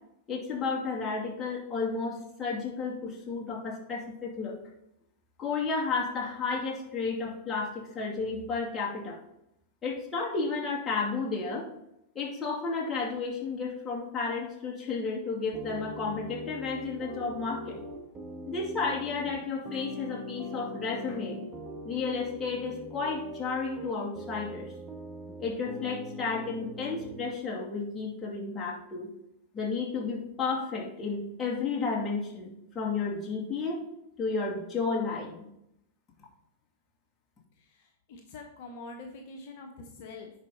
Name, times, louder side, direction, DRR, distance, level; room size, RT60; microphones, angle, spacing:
voice 1, 0.3-4.6 5.4-9.2 9.8-11.7 12.1-17.8 18.5-21.4 21.8-24.7 25.4-29.1 29.5-33.8 34.2-35.5, left 4 dB, 20° left, -3 dB, 2.5 m, -32 dB
sound 1, 15.5-27.3, right 1 dB, 10° right, 1.7 m, -42 dB
voice 2, 38.1-40.3, left 3 dB, 60° left, 2 dB, 1.1 m, -44 dB
9.9 x 5.0 x 3.9 m, 0.81 s
hypercardioid pair, 105°, 0 cm